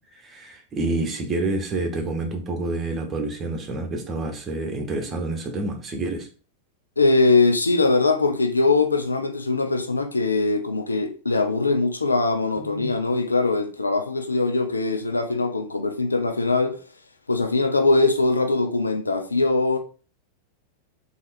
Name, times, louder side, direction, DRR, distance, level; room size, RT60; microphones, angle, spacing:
voice 1, 0.1-6.3 12.7-12.9, right 2 dB, 25° right, 1.0 m, -28 dB
voice 2, 7.0-16.8 17.3-19.8, left 3 dB, 80° left, 0.5 m, -21 dB
3.8 x 2.9 x 4.1 m
figure-of-eight pair, 90°, 0 cm